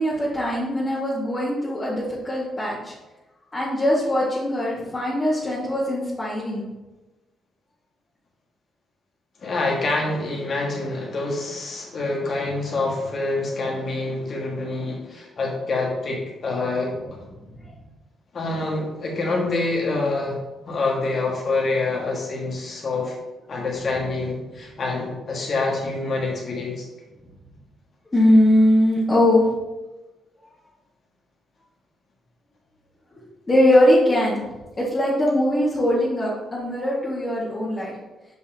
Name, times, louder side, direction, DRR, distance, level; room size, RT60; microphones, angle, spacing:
voice 1, 0.0-2.9 3.5-6.6 17.6-17.7 28.1-29.5 33.5-34.4 34.8-37.9, left 1 dB, 30° left, -8 dB, 2.1 m, -21 dB
voice 2, 9.4-17.0 18.3-20.4 20.7-23.2 23.5-26.8, left 3 dB, 50° left, -1 dB, 2.0 m, -26 dB
7.7 x 5.4 x 3.0 m, 1.1 s
hypercardioid pair, 45°, 0 cm